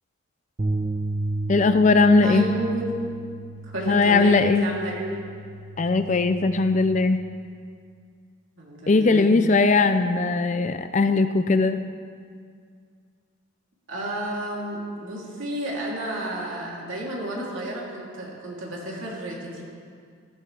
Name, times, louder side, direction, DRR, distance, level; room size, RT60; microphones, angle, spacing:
sound 1, 0.6-6.8, right 2 dB, 35° right, 0.9 m, -33 dB
voice 1, 1.5-2.5 3.9-4.7 5.8-7.2 8.9-11.8, left 3 dB, 35° left, 10 dB, 0.4 m, -19 dB
voice 2, 2.2-2.9 3.6-5.2 8.6-9.3 13.9-19.6, right 1 dB, 65° right, -4 dB, 3.1 m, -31 dB
14.5 x 14.5 x 3.4 m, 2.1 s
head